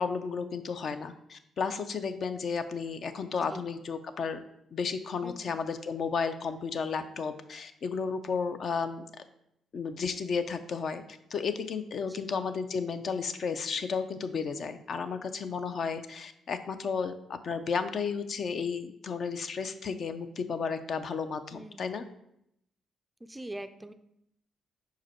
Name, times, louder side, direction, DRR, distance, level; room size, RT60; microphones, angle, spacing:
voice 1, 0.0-4.4 4.7-9.1 9.7-11.0 11.3-22.0, left 5 dB, 55° left, 10 dB, 0.4 m, -33 dB
voice 2, 5.2-5.7 12.0-12.3 21.5-22.1 23.2-23.9, right 1 dB, 10° right, 10 dB, 0.3 m, -44 dB
5.1 x 4.8 x 4.4 m, 0.78 s
cardioid pair, 90°, 0 cm